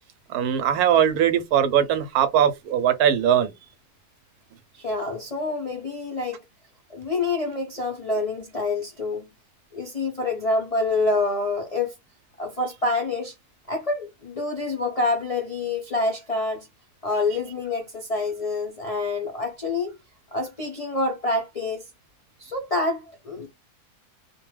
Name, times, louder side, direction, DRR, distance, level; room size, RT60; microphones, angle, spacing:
voice 1, 0.3-3.5, right 9 dB, 75° right, 1.0 m, -20 dB
voice 2, 4.7-6.4 6.9-9.2 9.7-11.9 12.4-13.3 13.7-16.7 17.0-20.0 20.3-21.8 22.4-23.5, left 3 dB, 55° left, 0.4 m, -27 dB
2.5 x 2.2 x 3.1 m
omnidirectional pair, 1.7 m